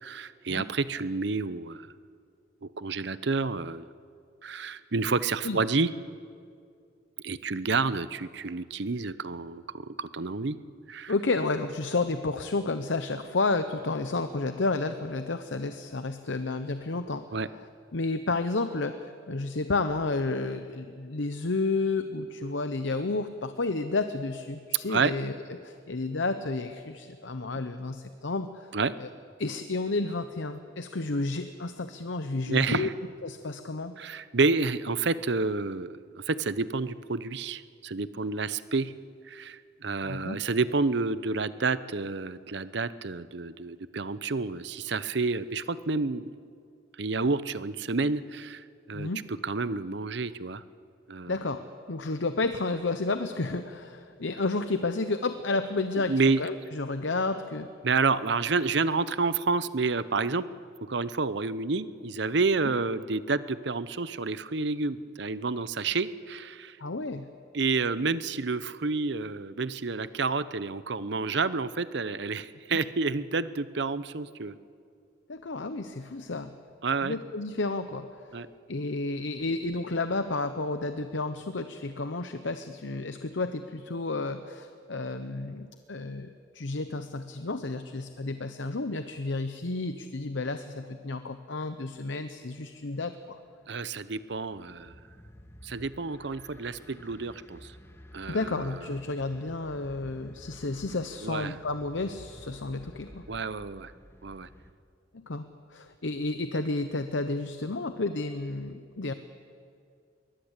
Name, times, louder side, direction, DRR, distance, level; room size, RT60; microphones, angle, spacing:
voice 1, 0.0-1.9 2.6-3.9 4.4-5.9 7.2-10.6 10.9-11.1 17.3-17.5 24.9-25.1 28.7-28.9 32.5-32.9 34.0-36.0 36.3-38.9 39.3-46.3 47.0-50.6 51.1-51.3 56.1-56.4 57.8-60.4 60.8-66.8 67.5-74.5 76.8-77.2 78.3-78.5 93.7-94.9 95.6-97.7 98.1-98.7 101.2-101.5 103.3-103.9 104.2-104.5, right 4 dB, 60° right, 15 dB, 0.8 m, -29 dB
voice 2, 11.1-29.1 29.4-32.9 33.2-33.9 40.0-40.4 48.9-49.3 51.3-56.1 56.4-57.7 66.8-67.3 75.3-76.5 77.0-78.4 78.7-93.4 98.3-103.3 105.1-105.4 105.7-109.1, left 3 dB, 70° left, 9 dB, 0.9 m, -31 dB
sound 1, 93.2-104.7, equal, 15° left, 1.2 m, -52 dB
22.5 x 19.5 x 8.3 m, 2.3 s
head